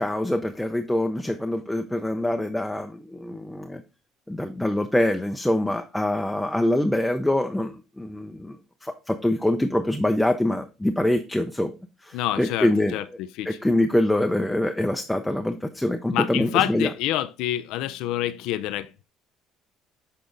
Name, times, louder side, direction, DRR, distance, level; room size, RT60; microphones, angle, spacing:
voice 1, 0.0-3.8 4.3-8.6 8.8-11.7 12.0-13.0 13.5-16.9, left 1 dB, 5° left, 0.5 m, -24 dB
voice 2, 12.1-13.6 16.1-19.0, left 13 dB, 80° left, 0.4 m, -27 dB
7.0 x 3.7 x 3.8 m
supercardioid pair, 90°, 0 cm